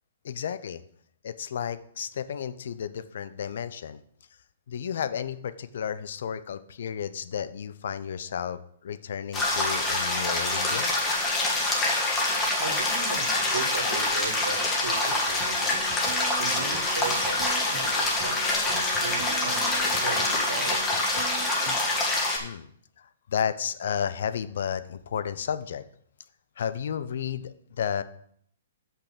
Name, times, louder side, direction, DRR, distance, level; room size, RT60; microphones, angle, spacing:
voice 1, 0.2-0.8 1.2-4.0 4.7-10.9 22.4-22.7 23.0-25.8 26.6-28.0, left 8 dB, 70° left, 13 dB, 0.6 m, -32 dB
sound 1, 9.3-22.4, left 2 dB, 15° left, 1.7 m, -26 dB
voice 2, 12.6-15.8 16.4-21.1, right 4 dB, 90° right, 5 dB, 1.7 m, -37 dB
sound 2, 15.4-17.9 18.2-21.8, right 6 dB, 40° right, 1.0 m, -41 dB
6.1 x 5.6 x 6.7 m, 0.66 s
hypercardioid pair, 140°, 0 cm